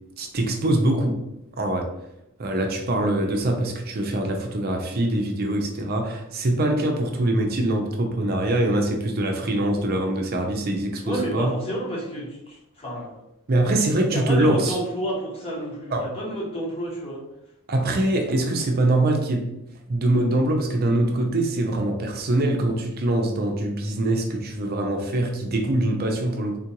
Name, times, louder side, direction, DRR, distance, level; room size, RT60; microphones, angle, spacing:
voice 1, 0.2-1.2 1.5-1.9 2.4-11.5 13.5-14.8 15.9-16.1 17.7-19.5 19.9-26.6, right 1 dB, 45° right, 3 dB, 0.5 m, -23 dB
voice 2, 11.0-13.2 14.1-17.2, equal, 25° left, -5 dB, 1.1 m, -30 dB
3.7 x 2.4 x 2.9 m, 0.86 s
head